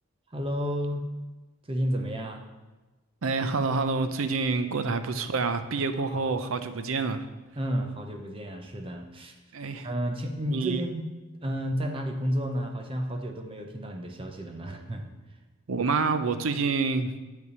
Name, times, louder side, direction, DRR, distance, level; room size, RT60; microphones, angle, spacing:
voice 1, 0.3-1.0 1.6-2.5 6.0-6.2 7.6-9.4 9.8-11.1 11.4-15.1, equal, 25° right, 3 dB, 0.7 m, -31 dB
voice 2, 3.2-7.2 9.5-9.9 10.5-10.8 15.7-17.1, right 4 dB, 75° right, 10 dB, 0.6 m, -27 dB
9.6 x 3.4 x 6.7 m, 1.2 s
head